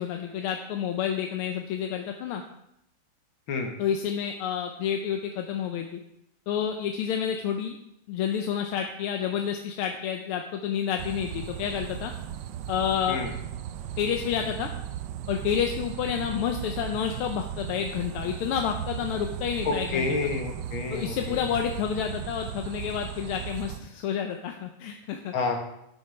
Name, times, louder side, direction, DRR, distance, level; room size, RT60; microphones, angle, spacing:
voice 1, 0.0-2.4 3.8-6.0 6.5-7.8 8.1-12.1 12.7-13.2 14.0-14.7 15.3-20.2 20.9-25.3, left 8 dB, 80° left, 4 dB, 1.6 m, -29 dB
sound 1, 11.0-23.8, right 10 dB, 75° right, 1.1 m, -37 dB
voice 2, 19.7-21.5 25.3-25.6, left 4 dB, 65° left, 3 dB, 2.1 m, -29 dB
10.5 x 9.0 x 3.3 m, 0.79 s
omnidirectional pair, 2.4 m